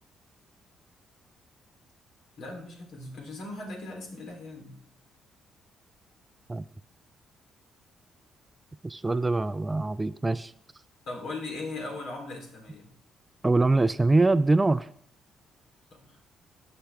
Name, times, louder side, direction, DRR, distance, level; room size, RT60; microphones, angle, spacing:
voice 1, 2.4-4.8 11.1-12.9 15.9-16.3, left 2 dB, 75° left, 1 dB, 3.4 m, -39 dB
voice 2, 8.8-10.5 13.4-14.9, right 2 dB, 20° right, 15 dB, 0.3 m, -23 dB
17.0 x 6.0 x 3.5 m, 0.65 s
cardioid pair, 90°, 0 cm